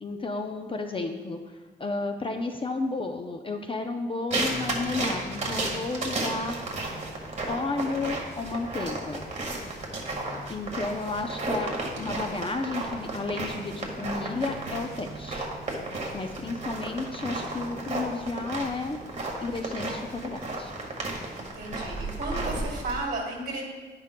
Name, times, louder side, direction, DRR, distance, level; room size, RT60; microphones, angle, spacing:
voice 1, 0.0-6.6 7.5-9.3 10.5-15.5 16.1-19.0 19.4-20.7, left 3 dB, 30° left, 5 dB, 0.5 m, -32 dB
sound 1, 4.3-23.0, right 2 dB, 35° right, 1.6 m, -33 dB
voice 2, 21.4-23.6, right 2 dB, 50° right, -3 dB, 2.8 m, -34 dB
10.5 x 10.0 x 2.2 m, 1.4 s
wide cardioid pair, 140°, 19 cm